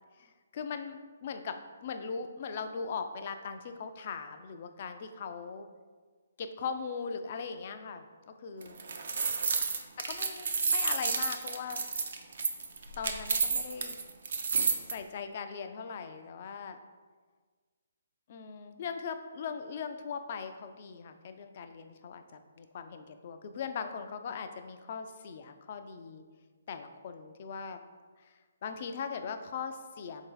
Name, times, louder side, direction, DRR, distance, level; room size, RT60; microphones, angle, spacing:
voice 1, 0.2-1.6 1.8-5.7 6.4-8.8 10.1-11.8 13.0-13.9 14.9-16.8 18.3-26.2 26.7-27.8 28.6-30.2, left 6 dB, 45° left, 8 dB, 0.3 m, -39 dB
sound 1, 8.6-14.9, right 5 dB, 65° right, 0.4 m, -30 dB
3.8 x 2.6 x 3.8 m, 1.5 s
hypercardioid pair, 145°, 0 cm